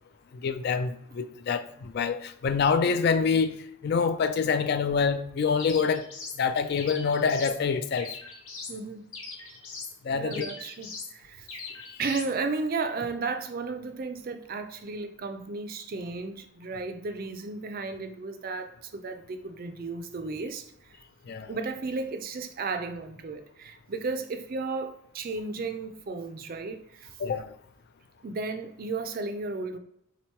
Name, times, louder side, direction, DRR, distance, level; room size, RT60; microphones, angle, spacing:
voice 1, 0.3-3.6 3.8-6.0 6.4-8.1 10.0-10.5 21.3-21.5 27.2-27.5, left 5 dB, 50° left, 10 dB, 0.3 m, -26 dB
sound 1, 5.6-6.4 6.8-7.6 7.9-8.8 9.1-10.0 10.3-11.1 11.5-12.3, left 4 dB, 80° left, 1.0 m, -41 dB
voice 2, 8.7-9.1 10.1-11.5 12.0-21.0 21.5-27.1 28.2-29.8, right 3 dB, 45° right, 7 dB, 0.4 m, -34 dB
3.8 x 2.9 x 4.4 m, 0.73 s
head